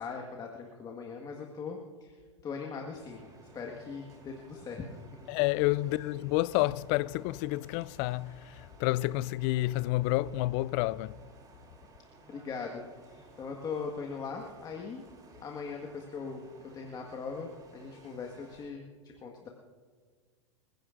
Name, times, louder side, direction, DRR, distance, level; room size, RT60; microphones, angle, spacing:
voice 1, 0.0-2.2 2.4-3.2 3.5-5.0 12.3-15.0 15.4-16.5 16.7-18.9 19.2-19.5, left 5 dB, 25° left, 1.6 m, -40 dB
sound 1, 3.0-18.7, right 2 dB, 25° right, 3.4 m, -56 dB
voice 2, 5.3-8.3 8.8-11.1, left 18 dB, 45° left, 0.4 m, -29 dB
26.5 x 16.0 x 2.6 m
hypercardioid pair, 100°, 15 cm